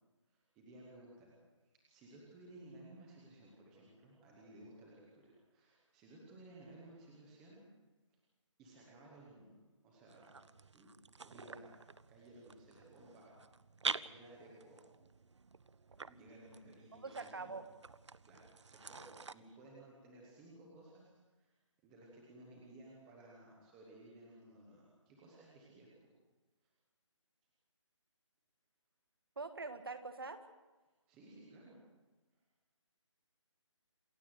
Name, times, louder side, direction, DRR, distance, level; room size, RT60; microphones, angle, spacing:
voice 1, 0.3-1.3 1.6-7.6 8.1-8.2 8.6-9.5 9.8-10.4 10.7-10.9 11.2-11.7 12.1-13.4 13.8-14.8 16.0-17.5 18.2-21.5 21.8-25.9 26.6-26.7 31.1-31.8 32.4-32.5, right 1 dB, 5° right, -3 dB, 0.9 m, -58 dB
sound 1, 10.1-19.3, right 4 dB, 65° right, 0.8 m, -47 dB
voice 2, 16.9-17.7 29.4-30.4, right 3 dB, 45° right, 10 dB, 1.9 m, -44 dB
27.0 x 15.5 x 7.8 m, 1.1 s
hypercardioid pair, 180°, 16 cm